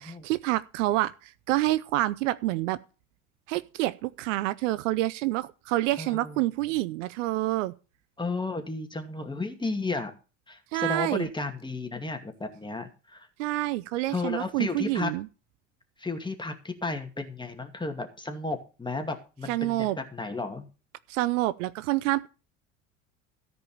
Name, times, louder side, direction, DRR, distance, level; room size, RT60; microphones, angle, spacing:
voice 1, 0.0-2.8 3.5-7.7 10.7-11.3 13.4-15.3 19.5-20.0 21.1-22.3, right 17 dB, 75° right, 0.7 m, -27 dB
voice 2, 6.0-6.4 8.2-10.1 10.5-13.3 14.1-15.1 16.0-20.7, left 3 dB, 10° left, 2.3 m, -33 dB
13.5 x 5.3 x 7.2 m
hypercardioid pair, 70°, 38 cm